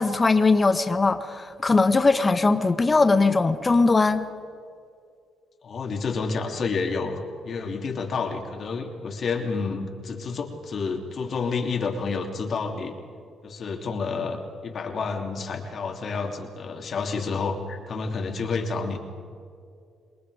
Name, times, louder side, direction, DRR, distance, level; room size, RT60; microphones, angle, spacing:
voice 1, 0.0-4.2, left 3 dB, 25° left, 10 dB, 1.3 m, -20 dB
voice 2, 5.6-12.9 13.4-19.0, left 4 dB, 55° left, 2 dB, 3.2 m, -29 dB
28.0 x 22.0 x 5.1 m, 2.3 s
cardioid pair, 90°, 0 cm